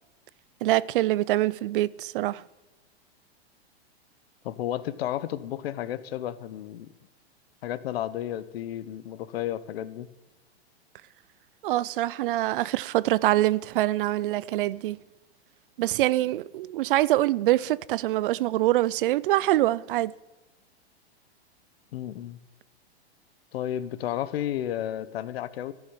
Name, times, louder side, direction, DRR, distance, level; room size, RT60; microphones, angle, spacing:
voice 1, 0.6-2.4 11.6-15.0 15.8-20.1, right 15 dB, 55° right, 0.4 m, -24 dB
voice 2, 4.4-6.9 7.6-10.1 21.9-22.4 23.5-25.7, left 11 dB, 65° left, 0.9 m, -32 dB
13.5 x 7.2 x 9.1 m
hypercardioid pair, 140°, 32 cm